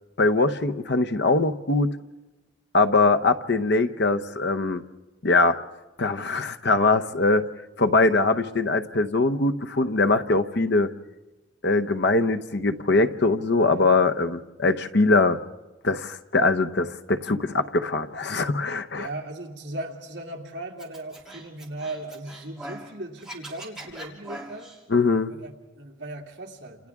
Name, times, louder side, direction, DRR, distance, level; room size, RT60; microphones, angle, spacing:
voice 1, 0.2-2.0 2.7-4.8 5.2-5.6 6.0-7.5 7.8-10.9 11.6-15.4 15.8-19.1 24.9-25.3, left 3 dB, 55° left, 9 dB, 0.8 m, -22 dB
voice 2, 19.0-24.7 25.3-26.9, right 2 dB, 60° right, 0 dB, 2.5 m, -37 dB
Scratching (performance technique), 20.8-22.9 23.2-24.8, right 1 dB, 5° right, 3.0 m, -41 dB
29.5 x 28.0 x 3.6 m, 1.1 s
head